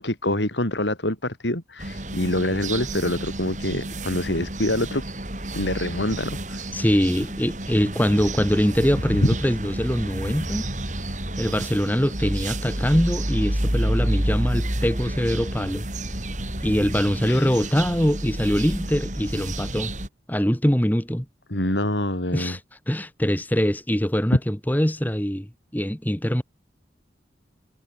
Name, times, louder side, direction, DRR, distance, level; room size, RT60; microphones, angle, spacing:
voice 1, 0.0-5.0 5.5-6.6 9.2-9.3 17.2-17.6 21.5-22.6, left 1 dB, 80° left, 6.1 m, -26 dB
sound 1, 1.8-20.1, right 1 dB, 40° right, 6.2 m, -30 dB
voice 2, 6.7-10.6 11.4-15.8 16.6-19.9 20.3-21.2 22.3-22.6 22.9-26.4, equal, 10° left, 1.6 m, -23 dB
head